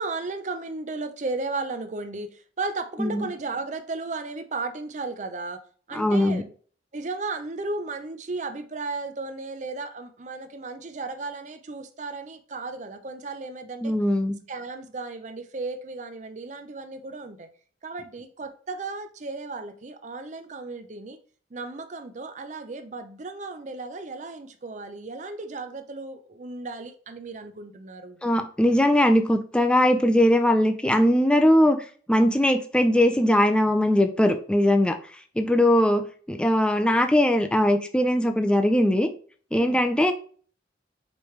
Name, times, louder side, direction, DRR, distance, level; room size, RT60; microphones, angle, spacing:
voice 1, 0.0-5.6 5.9-6.5 6.9-13.9 14.5-17.5 17.8-21.2 21.5-28.2 39.5-39.8, right 3 dB, 45° right, 0.5 m, -35 dB
voice 2, 5.9-6.4 13.8-14.3 28.2-31.8 32.1-35.0 35.4-39.1 39.5-40.1, left 1 dB, 5° left, 0.4 m, -20 dB
5.1 x 3.2 x 3.1 m
head